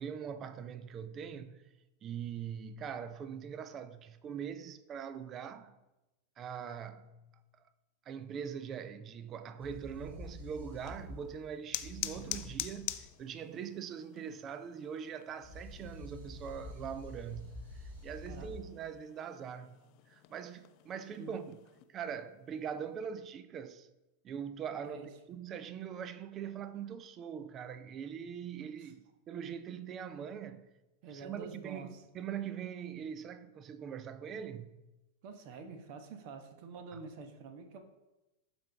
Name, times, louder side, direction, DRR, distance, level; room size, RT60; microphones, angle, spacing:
voice 1, 0.0-1.6 2.0-5.8 6.4-7.2 8.1-19.8 20.1-21.6 21.9-23.9 24.2-30.7 31.1-34.7 36.9-37.0, right 8 dB, 30° right, 0.5 m, -42 dB
sound 1, 9.6-13.1 15.4-18.6, left 1 dB, 60° right, 2.8 m, -48 dB
sound 2, 10.7-21.8, left 16 dB, 40° left, 0.4 m, -47 dB
voice 2, 31.0-32.0 35.2-37.8, right 4 dB, 45° right, 1.0 m, -47 dB
11.5 x 4.4 x 3.4 m
figure-of-eight pair, 90°, 0 cm